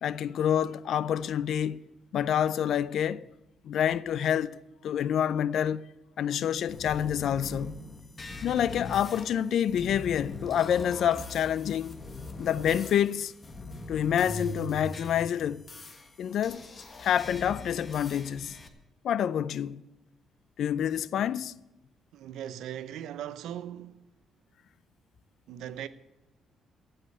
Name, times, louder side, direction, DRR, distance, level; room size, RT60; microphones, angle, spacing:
voice 1, 0.0-1.8 2.1-3.2 3.6-4.6 4.8-5.8 6.2-7.8 8.4-12.0 12.4-13.3 13.9-15.6 16.2-16.6 17.0-18.6 19.0-19.8 20.6-21.5, left 9 dB, 70° left, 0.4 m, -27 dB
sound 1, 6.7-18.7, left 2 dB, 35° left, 1.4 m, -42 dB
voice 2, 22.1-24.1 25.5-25.9, right 10 dB, 85° right, 0.6 m, -39 dB
14.5 x 5.6 x 8.3 m
cardioid pair, 90°, 0 cm